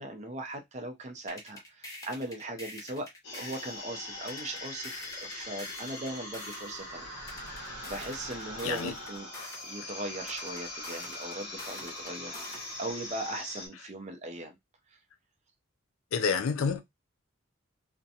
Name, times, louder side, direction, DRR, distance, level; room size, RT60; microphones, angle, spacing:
voice 1, 0.0-3.1 3.3-7.1 7.6-9.3 9.6-14.6 14.9-15.0, right 1 dB, 30° right, 0.5 m, -39 dB
sound 1, 1.3-3.7 4.3-6.7 7.3-9.7 10.3-12.7, left 1 dB, 15° left, 0.6 m, -46 dB
sound 2, 3.2-13.7, left 1 dB, 55° left, 1.0 m, -41 dB
voice 2, 8.6-8.9 16.1-16.8, left 5 dB, 75° left, 0.4 m, -28 dB
2.5 x 2.1 x 2.7 m
head